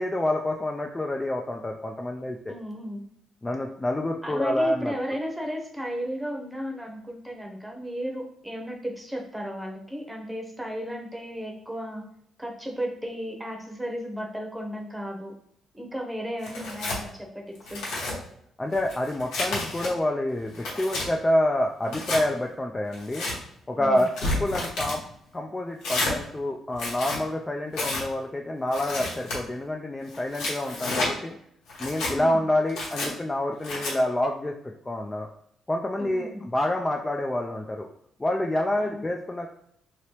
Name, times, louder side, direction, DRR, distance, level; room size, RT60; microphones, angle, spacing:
voice 1, 0.0-2.5 3.4-4.9 18.6-23.3 23.7-25.0 25.3-31.4 31.8-34.5 34.9-35.3 35.7-37.9 38.2-39.5, left 1 dB, 20° left, 2 dB, 0.3 m, -27 dB
voice 2, 2.5-3.0 4.2-12.0 12.4-15.3 15.7-17.8 23.7-24.1 32.1-32.4 36.0-36.4 38.8-39.0, equal, 10° right, 1 dB, 0.8 m, -34 dB
Tearing, 16.4-17.0 17.5-18.1 18.7-19.9 20.4-21.1 21.8-22.2 22.9-23.3 24.0-25.0 25.8-26.1 26.7-27.2 27.7-28.0 28.7-29.4 30.1-31.1 31.7-32.1 32.7-33.1 33.6-33.9, left 2 dB, 90° left, 1.0 m, -30 dB
2.9 x 2.9 x 3.1 m, 0.70 s
cardioid pair, 90°, 0 cm